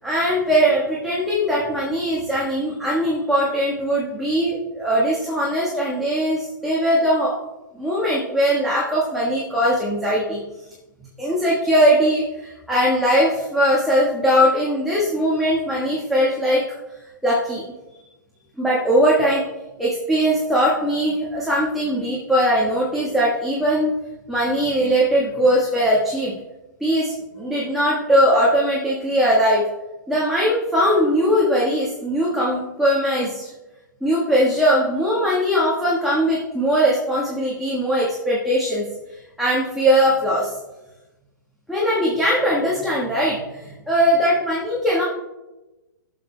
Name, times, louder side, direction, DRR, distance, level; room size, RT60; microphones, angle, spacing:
voice 1, 0.0-7.4 7.7-10.4 11.2-16.6 17.2-17.6 18.6-19.4 19.8-23.9 24.3-26.3 26.8-29.6 30.1-33.5 34.0-38.8 39.4-40.5 41.7-45.0, equal, ahead, -6 dB, 1.4 m, -20 dB
13.0 x 6.7 x 2.2 m, 1.0 s
hypercardioid pair, 120°, 11 cm